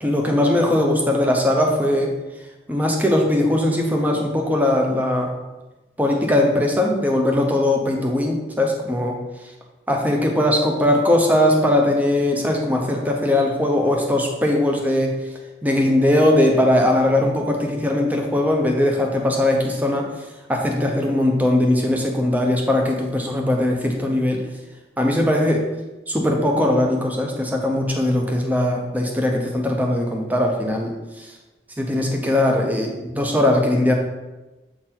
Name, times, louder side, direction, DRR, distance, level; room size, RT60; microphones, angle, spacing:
voice 1, 0.0-2.1 2.7-5.3 6.0-9.2 9.9-15.2 15.6-20.1 20.5-24.4 25.0-25.6 26.1-31.3 31.8-33.9, left 1 dB, 10° right, 1 dB, 0.7 m, -20 dB
7.6 x 4.0 x 4.4 m, 1.1 s
head